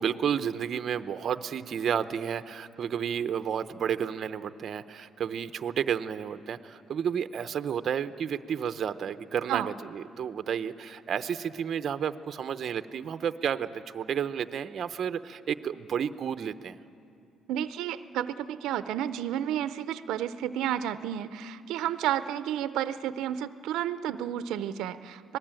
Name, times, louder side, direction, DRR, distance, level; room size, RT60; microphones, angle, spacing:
voice 1, 0.0-16.8, right 8 dB, 45° right, 10 dB, 0.7 m, -31 dB
voice 2, 17.5-25.4, right 11 dB, 90° right, 12 dB, 0.6 m, -31 dB
26.0 x 19.0 x 8.9 m, 2.5 s
cardioid pair, 145°, 0 cm